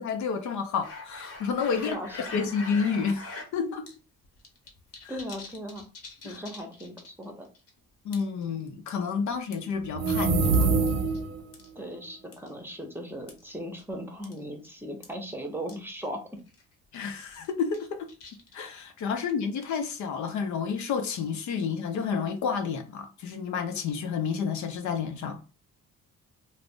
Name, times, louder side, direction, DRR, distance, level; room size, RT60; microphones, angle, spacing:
voice 1, 0.0-3.2 3.5-3.9 5.0-5.2 6.2-6.4 8.0-10.7 16.9-18.1 18.5-25.4, left 6 dB, 70° left, 0.6 m, -30 dB
sound 1, 0.8-3.5 3.9-4.0 4.2-7.2 7.5-7.7 8.1-8.4 8.9-9.7 10.5-11.2 11.5-11.7 12.3-12.5 13.3-13.4 13.8-13.9 14.2-14.4 14.6-14.7 15.0-15.1 15.7-15.8 16.0-16.1 16.5-16.7 17.2-18.8, left 3 dB, 50° left, 0.9 m, -43 dB
voice 2, 5.1-5.8 6.2-7.5 11.8-16.2, equal, 5° right, 0.7 m, -38 dB
sound 2, 9.9-11.4, right 4 dB, 55° right, 0.5 m, -24 dB
2.4 x 2.0 x 3.5 m
cardioid pair, 90°, 30 cm